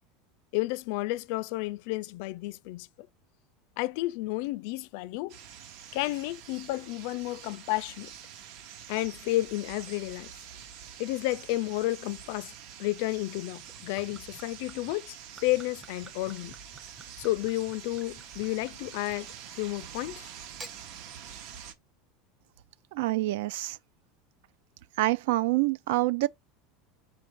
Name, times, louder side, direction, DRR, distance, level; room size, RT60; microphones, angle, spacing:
voice 1, 0.5-2.9 3.8-5.4 5.9-8.1 8.9-10.3 11.0-12.5 12.8-15.2 15.4-16.5 17.2-19.3 19.5-20.3, left 18 dB, 60° left, 0.3 m, -31 dB
sound 1, 5.3-21.7, right 9 dB, 55° right, 0.8 m, -46 dB
Gurgling / Chink clink / Liquid, 13.6-19.7 20.4-20.8, right 3 dB, 15° right, 0.5 m, -52 dB
voice 2, 22.9-23.8 25.0-26.3, right 18 dB, 75° right, 0.3 m, -26 dB
4.4 x 2.5 x 4.6 m
supercardioid pair, 160°, 0 cm